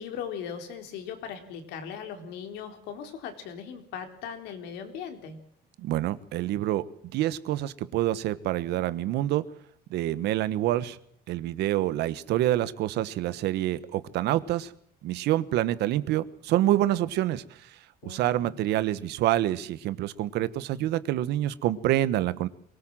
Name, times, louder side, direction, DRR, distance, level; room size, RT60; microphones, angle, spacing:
voice 1, 0.0-5.4 18.0-18.5, left 7 dB, 90° left, 6 dB, 3.9 m, -39 dB
voice 2, 5.8-6.8 7.1-9.4 9.9-11.0 11.3-14.7 15.0-17.7 18.0-22.5, right 14 dB, 80° right, 15 dB, 1.3 m, -27 dB
23.5 x 18.0 x 7.6 m, 0.65 s
cardioid pair, 110°, 17 cm